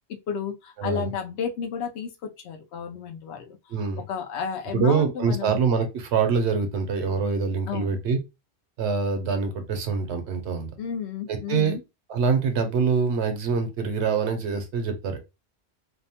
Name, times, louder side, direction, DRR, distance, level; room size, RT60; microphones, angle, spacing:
voice 1, 0.1-3.6 4.0-5.6 7.7-8.0 10.8-11.8, left 7 dB, 75° left, 0.8 m, -32 dB
voice 2, 0.8-1.1 3.7-4.0 4.7-8.2 8.8-10.7 11.3-11.7 12.1-15.2, right 5 dB, 75° right, 0.9 m, -25 dB
2.7 x 2.1 x 2.7 m
omnidirectional pair, 1.2 m